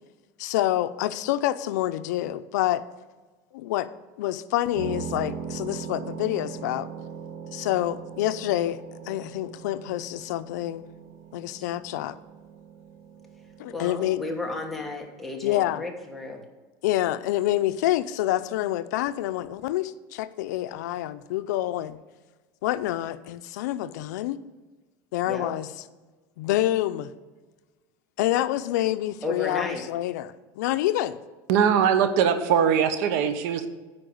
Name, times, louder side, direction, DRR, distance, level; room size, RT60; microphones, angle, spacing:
voice 1, 0.4-2.8 3.5-3.9 4.2-6.9 7.5-8.8 9.0-10.8 11.3-12.2 13.6-14.2 15.4-15.8 16.8-22.0 22.6-24.4 25.1-25.7 26.4-27.1 28.2-31.2, left 14 dB, 80° left, 12 dB, 0.5 m, -27 dB
sound 1, 4.7-15.0, right 6 dB, 45° right, 1.6 m, -40 dB
voice 2, 13.7-16.4 25.2-25.5 29.2-29.9, left 3 dB, ahead, -1 dB, 1.3 m, -33 dB
voice 3, 31.5-33.7, right 7 dB, 65° right, 10 dB, 1.0 m, -21 dB
9.8 x 4.6 x 7.8 m, 1.3 s
supercardioid pair, 160°, 9 cm